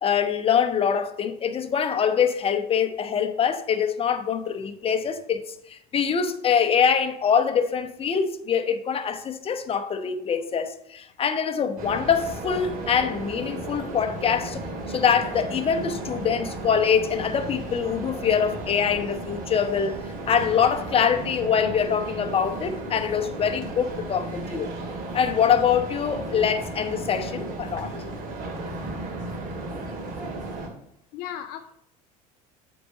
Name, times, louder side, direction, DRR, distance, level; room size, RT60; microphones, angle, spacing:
voice 1, 0.0-5.4 5.7-14.6 14.9-20.0 20.3-24.7 25.1-27.9, left 7 dB, 30° left, 0.8 m, -24 dB
sound 1, 11.8-30.7, right 2 dB, 45° right, 2.2 m, -34 dB
voice 2, 31.1-31.7, left 10 dB, 55° left, 0.5 m, -37 dB
8.4 x 4.0 x 5.2 m
hypercardioid pair, 85°, 19 cm